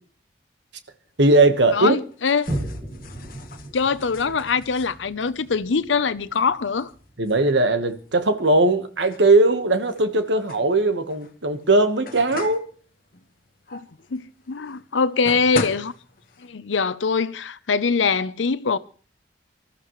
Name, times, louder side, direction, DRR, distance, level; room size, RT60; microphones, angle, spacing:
sound 1, 1.0-16.5, left 3 dB, 50° left, 1.4 m, -41 dB
voice 1, 1.2-2.0 7.2-12.6, right 2 dB, 70° right, 1.3 m, -19 dB
voice 2, 1.7-2.5 3.7-6.9 13.7-13.8 14.1-15.9 16.5-18.8, left 5 dB, 85° left, 0.7 m, -23 dB
Boom, 2.5-9.4 9.9-10.0, right 1 dB, 35° right, 2.2 m, -37 dB
24.5 x 13.5 x 3.2 m
head